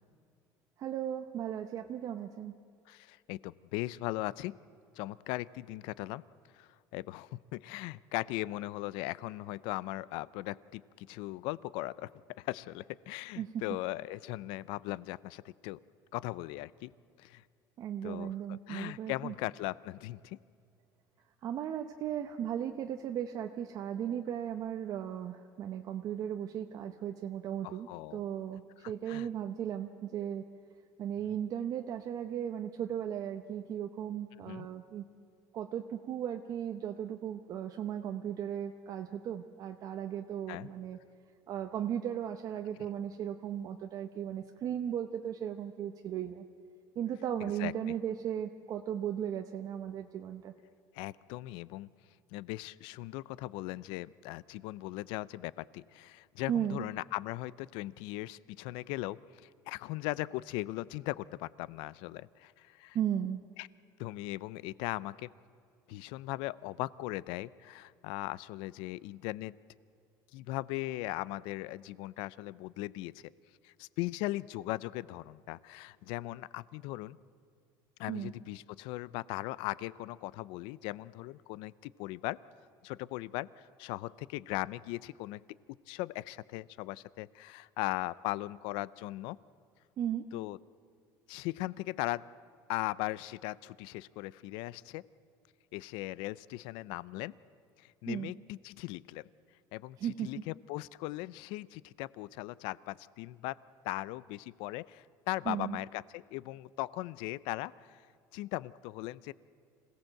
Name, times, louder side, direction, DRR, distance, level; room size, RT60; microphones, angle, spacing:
voice 1, 0.8-2.6 13.4-13.6 17.8-19.3 21.4-30.4 31.0-35.0 35.5-41.0 41.5-46.4 47.0-50.5 56.5-56.8 62.9-63.4 78.1-78.3 90.0-90.3 98.1-98.3 100.0-100.3 105.5-105.8, right 9 dB, 45° right, 5 dB, 0.8 m, -36 dB
voice 2, 2.9-4.6 5.0-6.2 6.5-12.1 12.4-15.8 16.1-16.9 17.2-17.4 18.0-20.4 27.6-28.2 28.8-29.3 31.2-31.3 34.4-34.7 40.5-40.7 47.4-47.7 50.9-51.9 52.3-63.0 63.6-63.7 64.0-65.3 65.9-69.6 70.3-73.2 73.6-77.2 78.0-82.4 82.8-85.4 85.9-89.4 90.3-90.6 91.3-92.2 92.7-95.0 95.7-97.4 97.8-99.3 99.7-103.6 103.8-108.1 108.3-109.3, left 18 dB, 80° left, 20 dB, 0.5 m, -39 dB
26.0 x 17.5 x 7.7 m, 2.3 s
cardioid pair, 155°, 8 cm